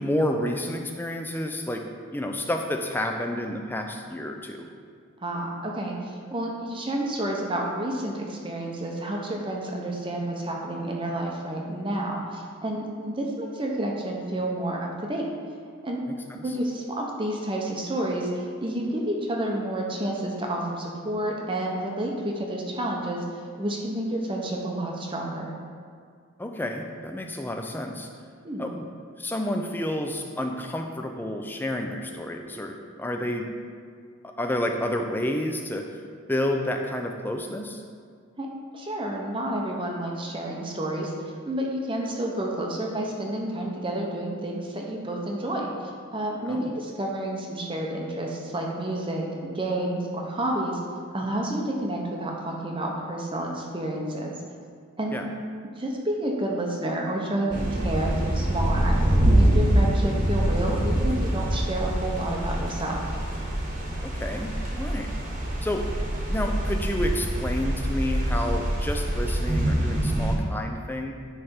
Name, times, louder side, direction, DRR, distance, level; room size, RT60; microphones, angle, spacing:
voice 1, 0.0-1.8 2.1-4.7 16.1-16.6 26.4-28.1 28.6-28.9 29.2-33.5 34.4-35.8 36.3-37.8 46.5-46.7 55.1-55.3 64.0-65.1 65.6-71.1, left 1 dB, 10° left, 3 dB, 0.4 m, -30 dB
voice 2, 5.2-15.3 15.8-16.0 16.4-25.5 28.4-28.6 38.4-38.5 38.7-41.1 41.5-50.8 51.1-54.3 55.0-55.2 55.8-59.0 59.3-63.0, right 1 dB, 25° right, -1 dB, 0.7 m, -30 dB
sound 1, 57.5-70.4, right 1 dB, 40° right, 1.2 m, -25 dB
10.0 x 3.3 x 4.4 m, 2.2 s
head